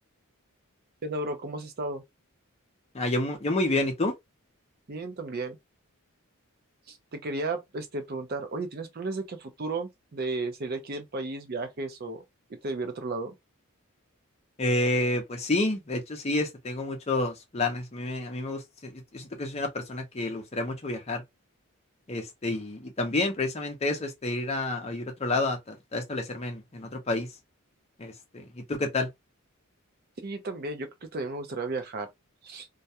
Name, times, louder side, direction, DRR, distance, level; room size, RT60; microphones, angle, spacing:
voice 1, 1.0-2.0 4.9-5.6 6.9-12.2 12.5-13.3 30.2-32.1 32.4-32.7, right 2 dB, 45° right, 0.5 m, -34 dB
voice 2, 2.9-4.1 14.6-21.2 22.1-27.3 28.0-29.1, left 2 dB, 30° left, 0.6 m, -29 dB
2.3 x 2.2 x 2.8 m
head